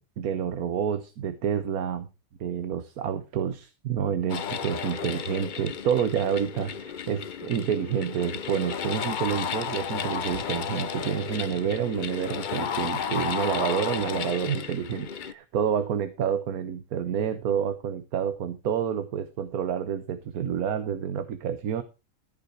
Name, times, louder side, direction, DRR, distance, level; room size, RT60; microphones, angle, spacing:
voice 1, 0.0-2.1 2.4-21.8, right 8 dB, 80° right, 11 dB, 1.4 m, -29 dB
sound 1, 4.3-15.3, left 7 dB, 50° left, 0.6 m, -33 dB
14.5 x 5.6 x 5.9 m, 0.29 s
omnidirectional pair, 1.5 m